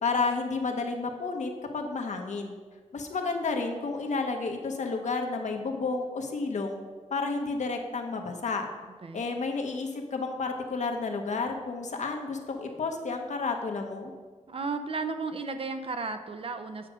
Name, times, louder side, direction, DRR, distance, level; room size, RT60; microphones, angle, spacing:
voice 1, 0.0-2.5 2.9-6.8 7.1-8.7 9.1-14.1, left 4 dB, 65° left, 3 dB, 1.0 m, -31 dB
voice 2, 14.5-16.9, right 4 dB, 45° right, 8 dB, 0.6 m, -34 dB
8.3 x 4.9 x 6.2 m, 1.4 s
wide cardioid pair, 155°, 13 cm